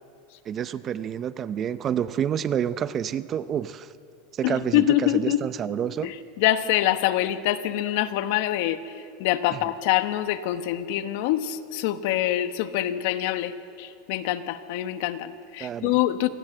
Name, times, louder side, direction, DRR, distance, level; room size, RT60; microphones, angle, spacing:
voice 1, 0.4-3.9 4.3-6.1 9.5-9.6 15.6-16.0, right 9 dB, 30° right, 15 dB, 0.6 m, -28 dB
voice 2, 4.4-5.4 6.0-6.1 6.4-8.8 9.2-16.3, left 13 dB, 65° left, 11 dB, 1.2 m, -25 dB
26.5 x 18.0 x 7.8 m, 2.6 s
supercardioid pair, 145°, 0 cm